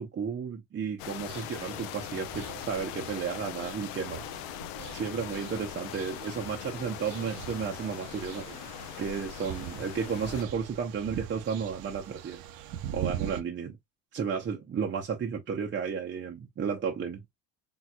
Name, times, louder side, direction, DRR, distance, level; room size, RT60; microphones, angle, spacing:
voice 1, 0.0-4.2 4.9-8.6 9.0-12.4 12.9-13.8 14.1-17.2, right 6 dB, 30° right, 0.7 m, -33 dB
sound 1, 1.0-10.4, left 13 dB, 90° left, 0.7 m, -41 dB
sound 2, 1.2-13.4, right 10 dB, 75° right, 0.8 m, -42 dB
4.4 x 3.7 x 2.2 m
cardioid pair, 120°, 35 cm